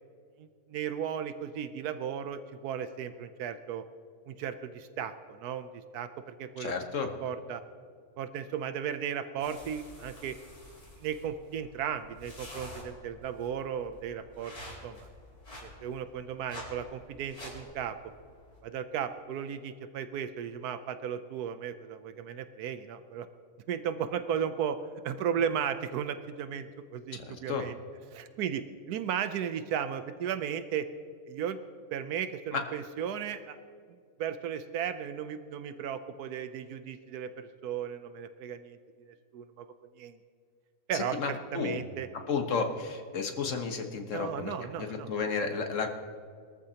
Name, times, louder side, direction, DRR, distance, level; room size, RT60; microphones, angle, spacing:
voice 1, 0.4-3.8 4.3-6.7 7.2-7.6 8.2-10.4 11.0-14.5 14.8-15.1 15.6-18.0 18.6-23.3 23.7-24.8 25.0-27.7 28.1-30.9 31.3-31.6 31.9-33.6 34.2-38.8 39.1-39.7 40.0-40.2 40.9-42.1 44.1-45.1, right 8 dB, 85° right, 10 dB, 1.2 m, -35 dB
voice 2, 6.6-7.1 27.1-27.7 32.5-32.6 40.9-41.8 42.3-44.5 44.8-45.9, left 5 dB, 55° left, 4 dB, 1.5 m, -32 dB
sound 1, 9.4-18.6, left 1 dB, 40° left, 5.0 m, -49 dB
22.5 x 13.5 x 2.9 m, 2.2 s
omnidirectional pair, 1.6 m